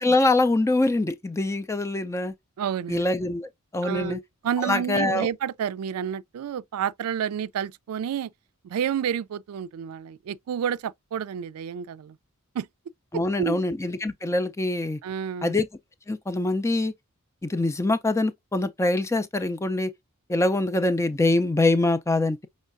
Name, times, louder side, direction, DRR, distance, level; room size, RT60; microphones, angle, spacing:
voice 1, 0.0-2.3 2.9-4.2 4.6-5.3 13.1-15.0 15.4-15.7 16.1-16.9 17.4-19.9 20.3-22.5, left 2 dB, 15° left, 0.4 m, -24 dB
voice 2, 2.6-3.0 3.8-8.3 8.6-12.2 12.5-12.7 13.4-13.7 15.0-15.5, right 8 dB, 90° right, 0.3 m, -30 dB
5.5 x 3.1 x 2.5 m
head